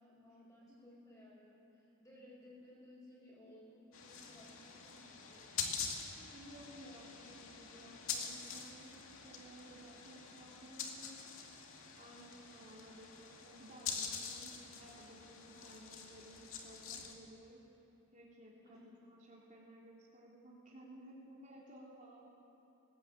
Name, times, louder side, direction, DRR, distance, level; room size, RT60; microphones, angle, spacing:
voice 1, 0.0-5.7 18.6-18.8, left 1 dB, 15° left, -5 dB, 7.8 m, -59 dB
sound 1, 3.9-17.1, left 6 dB, 70° left, 2.3 m, -45 dB
voice 2, 6.2-11.1 12.0-17.6 18.1-18.8 19.1-22.3, right 1 dB, 35° right, -5 dB, 3.4 m, -56 dB
19.5 x 19.5 x 8.8 m, 2.8 s
head